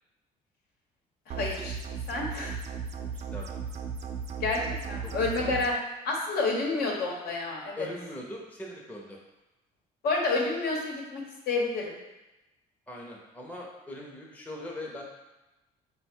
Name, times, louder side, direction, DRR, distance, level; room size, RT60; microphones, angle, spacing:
voice 1, 1.3-1.8 2.1-2.6 4.4-5.7 6.0-7.9 10.0-12.0, left 3 dB, 70° left, -1 dB, 1.0 m, -29 dB
sound 1, 1.3-5.7, right 5 dB, 40° right, 0.4 m, -36 dB
voice 2, 3.1-3.6 5.0-5.1 5.4-5.6 7.8-9.2 12.9-15.0, left 1 dB, 10° left, -2 dB, 0.6 m, -41 dB
4.1 x 2.2 x 4.4 m, 1.0 s
cardioid pair, 110°, 17 cm